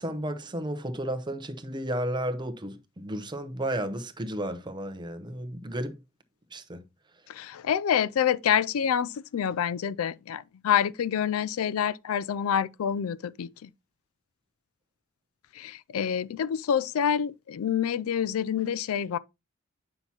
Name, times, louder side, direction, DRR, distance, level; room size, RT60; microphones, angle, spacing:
voice 1, 0.0-6.0 6.5-6.8, right 1 dB, 20° right, 0.8 m, -33 dB
voice 2, 7.3-13.7 15.5-19.2, left 8 dB, 85° left, 0.4 m, -27 dB
8.7 x 5.8 x 2.9 m
head